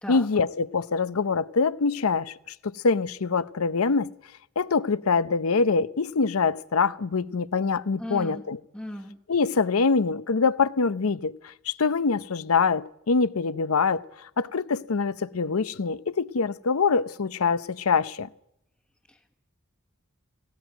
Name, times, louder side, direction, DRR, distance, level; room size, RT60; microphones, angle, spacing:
voice 1, 0.1-2.3 2.6-4.1 4.6-8.6 9.3-18.3, left 4 dB, 85° left, 0.7 m, -24 dB
voice 2, 8.0-8.4 8.7-9.2 19.1-19.3, left 1 dB, 5° left, 1.2 m, -37 dB
18.5 x 16.5 x 9.1 m
head